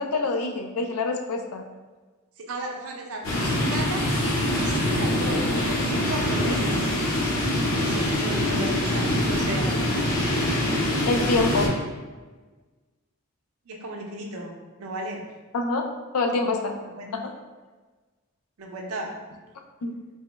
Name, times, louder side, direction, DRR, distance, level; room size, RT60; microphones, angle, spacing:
voice 1, 0.0-1.6 6.4-6.6 11.1-11.7 15.5-15.8 16.1-16.7 17.1-17.3 19.8-20.0, left 3 dB, 85° left, 3 dB, 0.4 m, -26 dB
voice 2, 2.4-4.2 4.6-6.9 7.7-10.0 13.7-15.3 16.9-17.1 18.6-19.2, right 1 dB, 75° right, 1 dB, 0.5 m, -35 dB
sound 1, 3.2-11.7, left 1 dB, 60° left, 0.7 m, -24 dB
3.3 x 2.1 x 3.1 m, 1.3 s
head